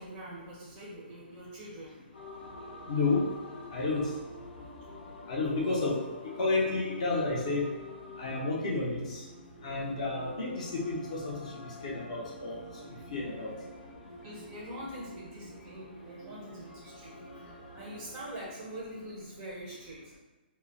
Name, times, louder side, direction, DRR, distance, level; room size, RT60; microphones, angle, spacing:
voice 1, 0.0-2.0 14.2-20.0, right 1 dB, 15° right, -5 dB, 0.5 m, -44 dB
sound 1, 2.1-19.4, left 2 dB, 90° left, 0.7 m, -48 dB
voice 2, 2.9-3.3 3.7-4.1 5.3-6.0 6.4-7.7 8.2-9.2 9.6-11.4 11.8-12.6 13.1-13.5, left 3 dB, 40° left, -3 dB, 0.6 m, -30 dB
2.2 x 2.0 x 3.7 m, 1.2 s
hypercardioid pair, 170°, 6 cm